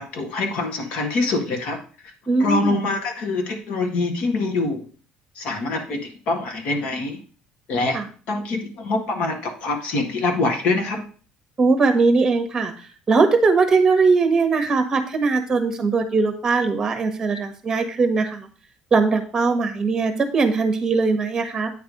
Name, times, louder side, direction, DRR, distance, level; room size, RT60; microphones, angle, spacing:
voice 1, 0.0-1.8 2.4-4.8 5.3-7.2 7.7-8.0 8.3-11.0, left 3 dB, 60° left, 4 dB, 1.7 m, -24 dB
voice 2, 2.3-2.8 7.9-8.1 11.6-12.7 13.1-18.5 18.9-21.7, right 4 dB, 20° right, 6 dB, 1.3 m, -20 dB
9.1 x 3.3 x 5.4 m, 0.40 s
cardioid pair, 150°, 2 cm